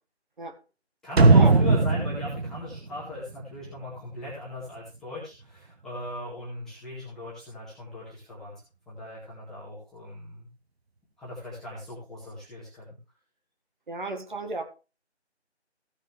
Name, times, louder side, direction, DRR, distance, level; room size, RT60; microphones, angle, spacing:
voice 1, 1.0-8.5 8.9-10.5 11.2-12.9, left 1 dB, ahead, -9 dB, 1.9 m, -38 dB
sound 1, 1.2-4.0 4.3-4.4, right 3 dB, 60° right, 1.1 m, -20 dB
voice 2, 13.9-14.6, right 2 dB, 45° right, 5 dB, 1.9 m, -32 dB
16.5 x 6.4 x 3.4 m, 0.31 s
figure-of-eight pair, 165°, 35 cm